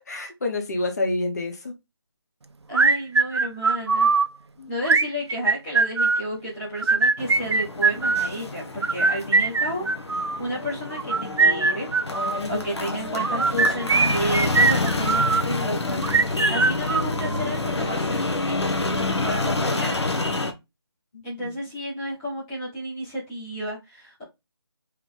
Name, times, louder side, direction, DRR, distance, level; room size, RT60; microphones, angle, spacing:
voice 1, 0.1-1.7 4.6-4.7 21.1-21.5, left 2 dB, 40° left, 4 dB, 0.8 m, -28 dB
voice 2, 2.7-4.1 4.7-9.9 10.4-11.9 12.2-18.6 19.2-20.1 21.2-24.2, equal, 5° left, -7 dB, 0.6 m, -32 dB
sound 1, 2.7-4.3 4.8-6.3 6.8-8.3 8.8-10.4 11.0-12.4 13.1-15.5 16.0-17.5, right 4 dB, 85° right, 0.5 m, -21 dB
sound 2, 7.2-20.5, left 2 dB, 80° left, 1.0 m, -28 dB
3.3 x 3.0 x 3.7 m, 0.22 s
figure-of-eight pair, 175°, 14 cm